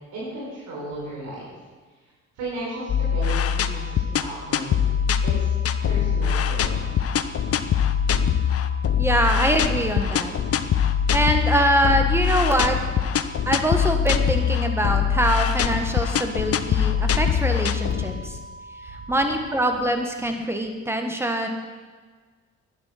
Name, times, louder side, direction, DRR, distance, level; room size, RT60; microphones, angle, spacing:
voice 1, 0.1-1.4 2.3-4.9 5.2-6.7 18.9-19.0, right 1 dB, 85° right, -5 dB, 5.0 m, -35 dB
sound 1, 2.7-19.6, right 2 dB, 50° right, 1.8 m, -43 dB
sound 2, 2.9-18.5, left 8 dB, 50° left, 0.8 m, -23 dB
voice 2, 9.0-10.4 11.1-12.9 13.5-18.4 18.8-21.5, right 1 dB, 10° right, 4 dB, 1.8 m, -24 dB
11.5 x 10.5 x 6.1 m, 1.4 s
cardioid pair, 90°, 30 cm